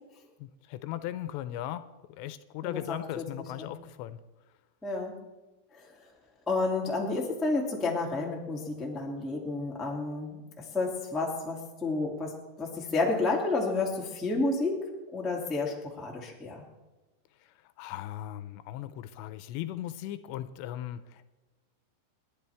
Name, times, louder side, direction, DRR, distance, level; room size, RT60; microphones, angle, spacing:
voice 1, 0.4-1.8 2.2-4.2 17.8-21.3, left 12 dB, 85° left, 12 dB, 2.8 m, -38 dB
voice 2, 2.6-3.2 3.6-3.7 4.8-5.1 5.7-5.9 6.4-14.8 15.1-16.6, left 3 dB, ahead, -2 dB, 1.0 m, -31 dB
29.0 x 10.5 x 3.5 m, 1.2 s
omnidirectional pair, 5.1 m